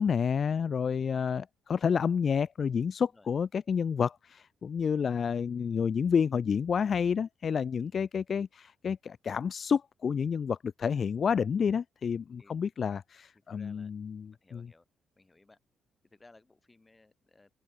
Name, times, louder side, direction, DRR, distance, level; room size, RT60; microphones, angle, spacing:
voice 1, 0.0-14.3 14.5-14.6, left 6 dB, 50° left, 0.3 m, -29 dB
voice 2, 13.3-13.9 14.2-14.9 15.1-15.6 16.0-17.5, left 2 dB, 20° left, 6.8 m, -60 dB
open air
cardioid pair, 90°, 0 cm